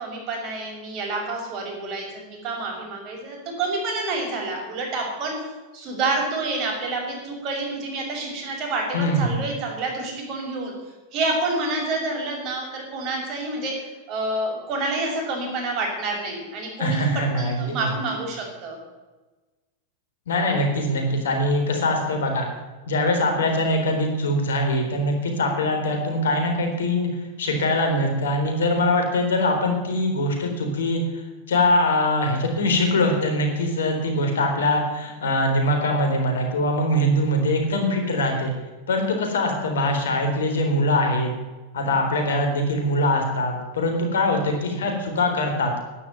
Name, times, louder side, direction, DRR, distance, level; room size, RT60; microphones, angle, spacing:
voice 1, 0.0-5.5 5.7-10.7 11.1-13.7 14.1-18.8, right 2 dB, 45° right, 1 dB, 6.6 m, -28 dB
voice 2, 8.9-9.4 16.8-17.9 20.3-22.5 22.9-27.1 27.4-38.5 38.9-41.3 41.7-45.7, left 1 dB, 80° left, 3 dB, 4.2 m, -22 dB
12.0 x 10.5 x 9.4 m, 1.2 s
hypercardioid pair, 100°, 0 cm